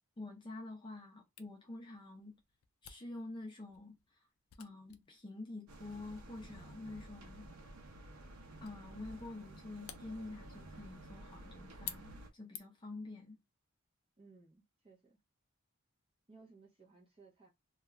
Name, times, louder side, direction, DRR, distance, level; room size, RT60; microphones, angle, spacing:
voice 1, 0.2-2.4 2.8-4.3 4.6-7.5 8.6-13.4, left 2 dB, 20° left, 0.5 m, -48 dB
Camera, 1.4-13.0, left 9 dB, 85° left, 0.4 m, -55 dB
sound 1, 5.7-12.3, right 1 dB, 85° right, 0.7 m, -53 dB
voice 2, 14.2-15.2 16.3-17.5, right 3 dB, 25° right, 0.8 m, -61 dB
2.3 x 2.3 x 3.0 m
head